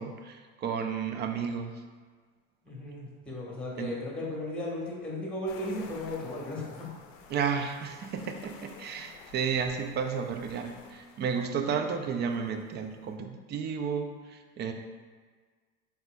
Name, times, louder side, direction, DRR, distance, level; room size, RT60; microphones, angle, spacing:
voice 1, 0.0-1.7 3.8-3.9 7.3-14.7, right 6 dB, 30° right, 6 dB, 0.3 m, -32 dB
voice 2, 2.6-6.9, left 1 dB, 5° left, -4 dB, 1.1 m, -36 dB
sound 1, 5.5-13.1, left 5 dB, 70° left, 0.6 m, -52 dB
4.2 x 4.1 x 2.3 m, 1.5 s
hypercardioid pair, 90°, 39 cm